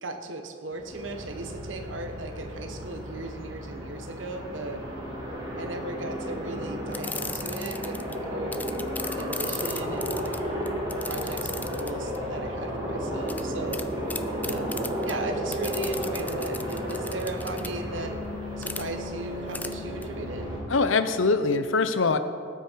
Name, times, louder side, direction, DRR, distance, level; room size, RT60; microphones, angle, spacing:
voice 1, 0.0-4.8 5.5-8.8 9.1-13.8 14.4-18.2 18.6-20.5, right 2 dB, 75° right, 5 dB, 1.3 m, -37 dB
Aircraft, 0.7-20.6, equal, 25° right, 3.1 m, -33 dB
sound 1, 6.9-8.1 8.5-12.2 13.3-13.4 13.7-13.8 14.1-15.1 15.5-17.7 18.6-18.8 19.5-19.7 20.0-20.1, left 3 dB, 10° left, 0.4 m, -36 dB
voice 2, 20.7-22.2, left 4 dB, 90° left, 10 dB, 0.8 m, -23 dB
18.0 x 8.4 x 4.7 m, 2.3 s
head